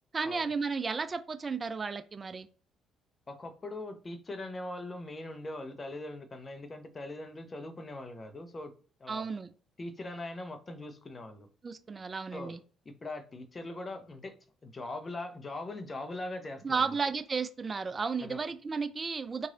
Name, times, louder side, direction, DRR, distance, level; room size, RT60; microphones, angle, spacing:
voice 1, 0.1-2.5 9.1-9.5 11.6-12.6 16.6-19.5, right 5 dB, 35° right, 0.4 m, -33 dB
voice 2, 3.3-8.7 9.0-9.3 9.8-11.5 12.3-12.6 12.8-14.3 14.6-16.9 18.2-18.4, left 2 dB, 35° left, 0.8 m, -41 dB
3.1 x 2.6 x 3.8 m
hypercardioid pair, 60°, 0 cm